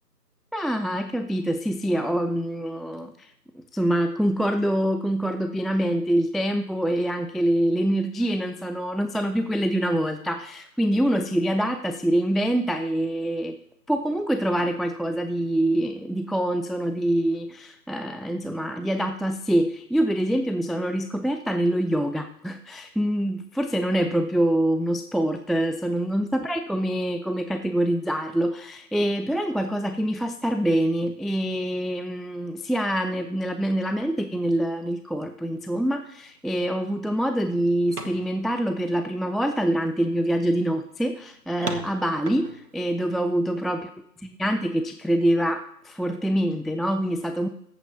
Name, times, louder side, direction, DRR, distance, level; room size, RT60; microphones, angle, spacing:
voice 1, 0.5-3.3 3.7-13.6 13.9-43.9 44.4-47.5, right 1 dB, ahead, 8 dB, 0.4 m, -25 dB
sound 1, 37.7-39.4 40.1-40.2 40.7-40.8 41.6-43.1, right 3 dB, 65° right, 1.3 m, -37 dB
20.0 x 8.1 x 2.7 m, 0.72 s
figure-of-eight pair, 180°, 49 cm